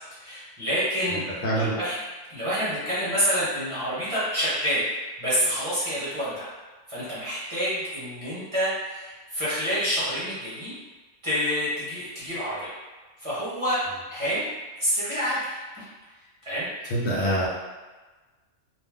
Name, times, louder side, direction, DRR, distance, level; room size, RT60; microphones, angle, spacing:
voice 1, 0.2-2.0 2.3-4.9 5.2-6.5 6.9-10.7 11.2-12.7 13.2-13.8 14.1-14.4 14.8-15.9 16.4-16.7 17.0-17.1, equal, 30° right, -11 dB, 1.0 m, -28 dB
voice 2, 1.4-1.7 16.9-17.5, right 1 dB, 70° left, -4 dB, 0.8 m, -24 dB
2.5 x 2.1 x 3.5 m, 1.3 s
omnidirectional pair, 1.3 m